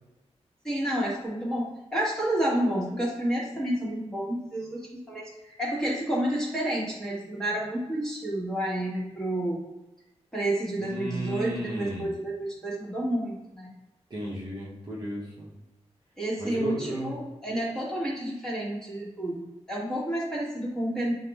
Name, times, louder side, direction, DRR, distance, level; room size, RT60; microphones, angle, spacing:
voice 1, 0.6-9.6 10.3-13.7 16.2-21.1, right 1 dB, 5° left, -6 dB, 1.3 m, -30 dB
voice 2, 10.8-12.1 14.1-15.5 16.4-17.2, equal, 40° right, -5 dB, 0.9 m, -34 dB
5.5 x 2.1 x 3.5 m, 1.0 s
wide cardioid pair, 140°, 11 cm